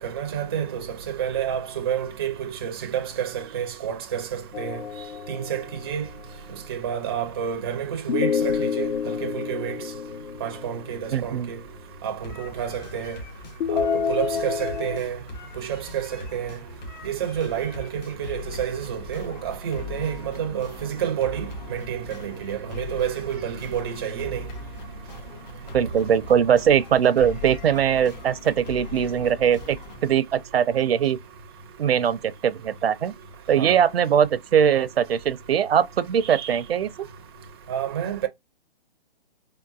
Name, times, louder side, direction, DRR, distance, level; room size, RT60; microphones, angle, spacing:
voice 1, 0.0-4.8 5.3-6.0 6.7-9.8 10.4-11.6 12.0-13.2 13.7-15.2 15.6-16.6 17.0-24.4 33.6-33.8 36.3-36.6 37.7-38.3, right 9 dB, 25° right, 0.4 m, -29 dB
sound 1, 4.5-6.1 8.1-11.2 13.6-15.0, left 7 dB, 85° left, 0.5 m, -28 dB
voice 2, 11.1-11.5 25.7-29.8 30.0-31.2 31.8-33.1 33.5-36.9, right 8 dB, 80° right, 0.5 m, -21 dB
sound 2, 12.2-30.2, left 2 dB, 45° left, 1.4 m, -40 dB
3.8 x 2.2 x 2.3 m
hypercardioid pair, 145°, 30 cm